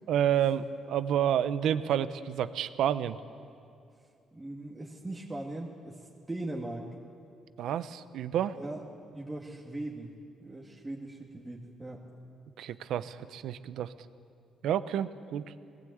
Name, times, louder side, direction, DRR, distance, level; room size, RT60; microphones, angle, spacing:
voice 1, 0.1-3.2 7.6-8.6 12.6-13.9 14.6-15.5, right 10 dB, 80° right, 13 dB, 0.8 m, -29 dB
voice 2, 4.3-6.9 8.5-8.8 9.1-10.1 10.4-12.1, right 2 dB, 15° right, -2 dB, 2.1 m, -39 dB
19.0 x 16.0 x 8.7 m, 2.4 s
cardioid pair, 90°, 0 cm